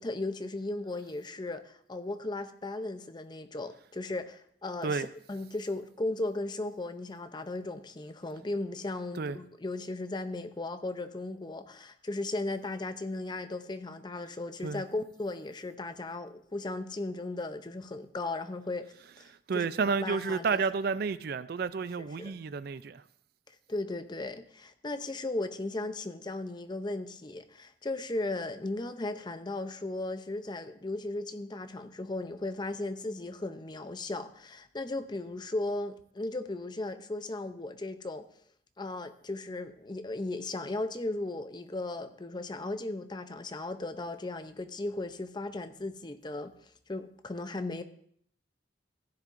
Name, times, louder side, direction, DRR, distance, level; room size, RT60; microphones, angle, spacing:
voice 1, 0.0-18.9 19.5-20.6 22.0-22.4 23.5-38.3 38.8-46.5 46.9-47.8, left 2 dB, 25° left, 0.5 m, -36 dB
voice 2, 19.5-23.0, right 5 dB, 55° right, 0.4 m, -31 dB
15.0 x 10.5 x 2.6 m
head